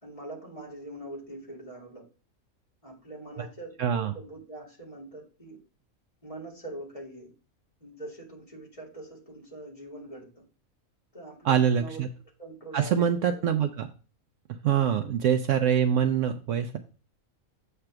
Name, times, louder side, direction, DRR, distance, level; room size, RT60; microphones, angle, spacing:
voice 1, 0.0-2.0 2.8-5.6 6.2-7.3 7.8-10.4 11.1-12.0 12.4-13.4, right 2 dB, 25° left, -1 dB, 2.2 m, -43 dB
voice 2, 3.8-4.1 11.4-12.1 12.7-13.9 14.6-16.8, right 8 dB, 70° right, 8 dB, 0.8 m, -24 dB
7.6 x 3.4 x 5.8 m, 0.36 s
omnidirectional pair, 1.5 m